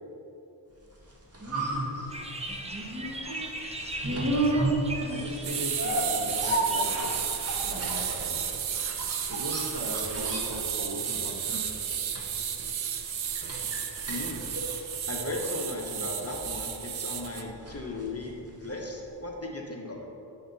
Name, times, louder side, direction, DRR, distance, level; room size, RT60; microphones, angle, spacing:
sound 1, 0.9-19.0 19.2-19.3, right 1 dB, 30° right, 1.5 m, -34 dB
sound 2, 2.1-7.5, right 2 dB, 15° right, 0.7 m, -39 dB
voice 1, 5.1-7.2 7.6-8.4 9.3-11.6, right 1 dB, 60° right, -2 dB, 1.4 m, -38 dB
sound 3, 5.4-17.4, right 8 dB, 75° right, 0.7 m, -33 dB
voice 2, 14.1-14.4 15.1-20.1, left 2 dB, 30° left, 0 dB, 1.0 m, -37 dB
8.6 x 5.7 x 4.1 m, 2.9 s
wide cardioid pair, 65°, 47 cm